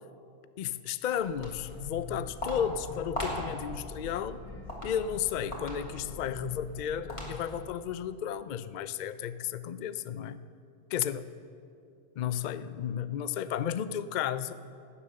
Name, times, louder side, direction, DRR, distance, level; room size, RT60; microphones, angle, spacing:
voice 1, 0.6-4.4 4.8-10.4 10.9-11.3 12.2-14.5, left 9 dB, 65° left, 14 dB, 0.4 m, -33 dB
Walk footsteps, 1.2-7.7, left 1 dB, 25° left, 2.9 m, -39 dB
17.0 x 9.9 x 6.7 m, 2.5 s
omnidirectional pair, 1.3 m